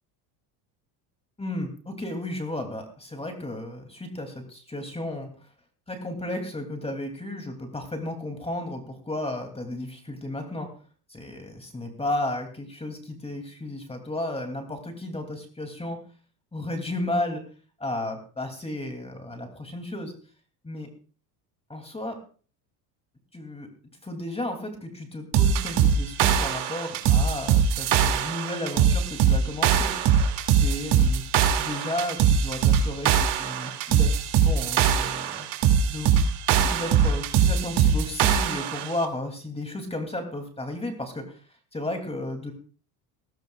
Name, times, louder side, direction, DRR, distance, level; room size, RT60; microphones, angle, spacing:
voice 1, 1.4-5.3 5.9-10.7 11.1-16.0 16.5-17.4 17.8-20.1 20.6-20.9 21.7-22.2 23.3-23.7 24.0-29.9 30.5-31.2 31.6-35.5 35.9-36.2 36.5-41.4 41.7-42.5, left 1 dB, 15° left, 5 dB, 2.8 m, -33 dB
sound 1, 25.3-38.9, right 7 dB, 60° right, 2.6 m, -22 dB
18.5 x 17.0 x 2.4 m, 0.39 s
supercardioid pair, 95°, 46 cm